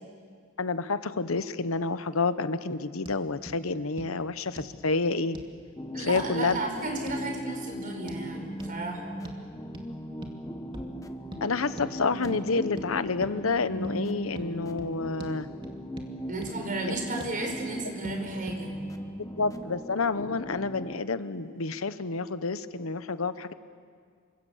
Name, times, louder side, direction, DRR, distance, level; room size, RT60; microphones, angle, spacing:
voice 1, 0.6-5.4 6.0-6.6 11.4-15.5 16.9-17.0 19.4-23.5, left 4 dB, 85° left, 13 dB, 1.0 m, -29 dB
sound 1, 3.0-3.2 3.5-3.6 4.0-4.1 4.6-4.8 5.3-5.5 6.2-6.7 7.1-7.2 8.1-8.2 8.6-8.7 9.2-9.4 9.7-9.9 10.2-10.4 10.7-10.9 11.3-11.4 11.8-11.9 12.2-12.4 12.8-12.9 13.2-13.4 13.8-14.0 14.4-14.5 14.8-14.9 15.2-15.3 15.6-16.1 16.4-16.5 16.9-17.4 18.0-18.2 18.5-18.6, right 1 dB, 25° right, 2.4 m, -42 dB
sound 2, 5.8-21.0, equal, 15° left, 1.3 m, -39 dB
voice 2, 5.9-9.2 16.3-18.8, right 2 dB, 40° right, 3 dB, 5.0 m, -33 dB
28.0 x 25.0 x 7.3 m, 2.1 s
head